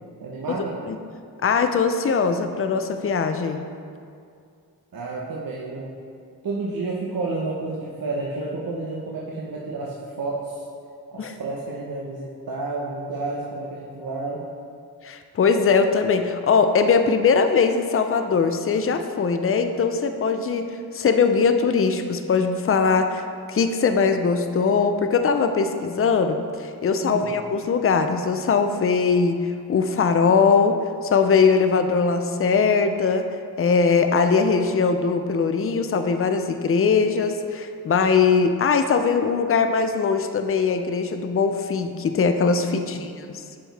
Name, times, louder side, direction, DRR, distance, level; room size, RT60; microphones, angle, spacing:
voice 1, 0.2-0.8 4.9-5.9 6.4-10.7 11.1-14.4 27.0-27.3 42.7-43.3, right 3 dB, 65° right, -4 dB, 0.9 m, -31 dB
voice 2, 1.4-3.6 11.2-11.3 15.0-20.7 20.9-33.3 33.6-43.4, left 5 dB, 35° left, 8 dB, 0.5 m, -21 dB
9.8 x 4.5 x 3.4 m, 2.3 s
cardioid pair, 70°, 38 cm